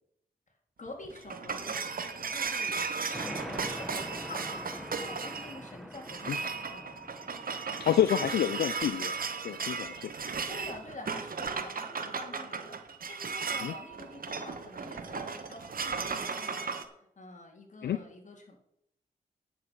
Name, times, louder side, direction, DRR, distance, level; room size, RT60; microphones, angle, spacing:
voice 1, 0.8-2.8 3.2-6.9 10.5-18.6, left 2 dB, 45° left, 2 dB, 3.3 m, -47 dB
sound 1, 0.9-16.8, right 5 dB, 60° right, 1.3 m, -36 dB
sound 2, 3.1-10.3, equal, ahead, 1.6 m, -45 dB
voice 2, 7.8-9.1 9.4-10.1 13.6-13.7 17.8-18.0, left 10 dB, 75° left, 12 dB, 0.5 m, -28 dB
9.4 x 7.4 x 6.3 m, 0.76 s
supercardioid pair, 40°, 17 cm